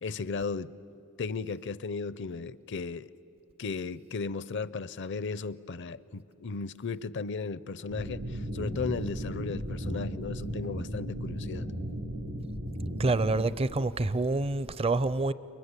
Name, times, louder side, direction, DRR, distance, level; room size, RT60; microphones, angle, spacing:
voice 1, 0.0-0.7 1.2-3.1 3.6-11.7, left 4 dB, 60° left, 0.6 m, -35 dB
sound 1, 7.9-13.4, equal, 85° right, 4.5 m, -35 dB
voice 2, 13.0-15.3, right 2 dB, 30° right, 0.5 m, -27 dB
30.0 x 23.5 x 8.2 m
head